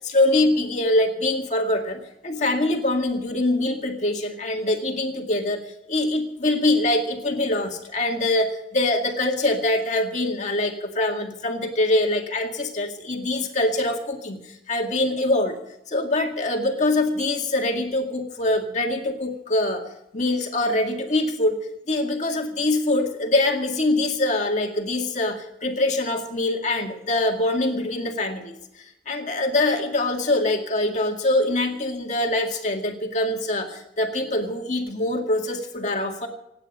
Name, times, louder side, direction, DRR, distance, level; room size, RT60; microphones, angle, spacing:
voice 1, 0.0-15.6 15.9-19.8 20.1-21.6 21.9-36.3, left 2 dB, 40° left, 2 dB, 2.1 m, -24 dB
26.5 x 9.9 x 5.3 m, 0.88 s
head